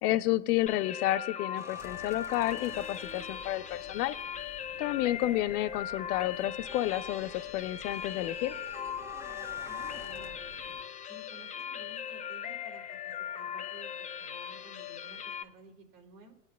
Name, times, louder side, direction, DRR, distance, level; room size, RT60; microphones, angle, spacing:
voice 1, 0.0-4.2 4.8-8.5, left 15 dB, 65° left, 14 dB, 0.8 m, -30 dB
sound 1, 0.7-15.4, left 9 dB, 15° left, 0.5 m, -39 dB
sound 2, 1.6-5.8 6.1-10.5, equal, 5° right, 0.9 m, -52 dB
sound 3, 1.8-10.8, left 1 dB, 25° right, 1.4 m, -55 dB
voice 2, 9.6-10.5 11.1-16.3, right 3 dB, 75° right, 2 dB, 3.1 m, -55 dB
19.5 x 9.7 x 2.3 m, 0.92 s
hypercardioid pair, 100°, 49 cm